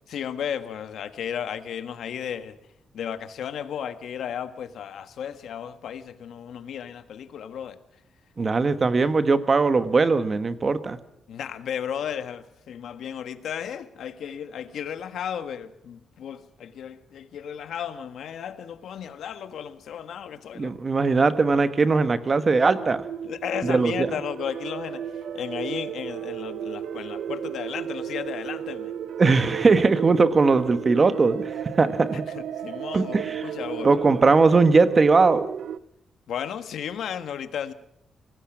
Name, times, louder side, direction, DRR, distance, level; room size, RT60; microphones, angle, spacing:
voice 1, 0.1-2.6 2.9-7.8 11.3-20.7 23.2-25.0 25.3-28.9 32.6-33.9 36.3-37.7, left 8 dB, 75° left, 1.4 m, -34 dB
voice 2, 8.4-11.0 20.5-23.0 23.6-24.1 29.2-32.2 32.9-33.5 33.8-35.5, right 4 dB, 30° right, 1.2 m, -20 dB
sound 1, 22.7-35.8, right 9 dB, 75° right, 0.7 m, -34 dB
25.0 x 19.0 x 6.0 m
wide cardioid pair, 150°, 0 cm